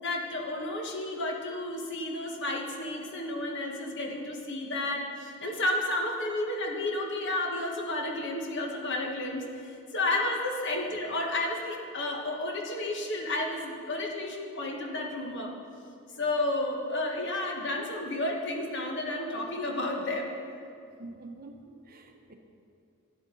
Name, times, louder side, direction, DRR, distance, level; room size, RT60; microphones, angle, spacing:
voice 1, 0.0-15.5 16.2-20.3, left 2 dB, 55° left, 1 dB, 1.3 m, -32 dB
voice 2, 21.0-22.3, right 2 dB, 45° right, 4 dB, 0.8 m, -46 dB
12.0 x 10.5 x 3.8 m, 2.5 s
head